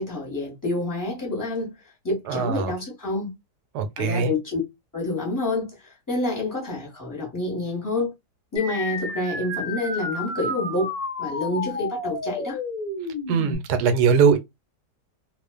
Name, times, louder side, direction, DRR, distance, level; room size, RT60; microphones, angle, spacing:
voice 1, 0.0-1.7 2.0-3.3 4.0-4.6 4.9-8.1 8.5-10.9 11.2-12.6, left 2 dB, 15° left, 0.9 m, -28 dB
voice 2, 2.3-2.7 3.7-4.3 13.3-14.4, right 6 dB, 80° right, 1.1 m, -21 dB
sound 1, 8.6-13.6, left 2 dB, 45° left, 0.5 m, -31 dB
2.4 x 2.3 x 2.2 m
omnidirectional pair, 1.7 m